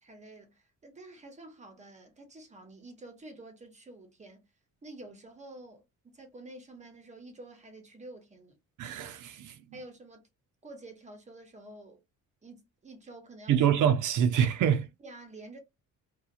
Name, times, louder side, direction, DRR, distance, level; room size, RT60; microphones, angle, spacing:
voice 1, 0.0-4.4 4.8-8.6 9.7-10.3 10.6-12.0 12.4-13.6 15.0-15.6, right 2 dB, 20° right, 0.6 m, -49 dB
voice 2, 8.8-9.8 13.5-14.9, right 9 dB, 75° right, 0.5 m, -26 dB
2.8 x 2.2 x 2.4 m
cardioid pair, 175°, 32 cm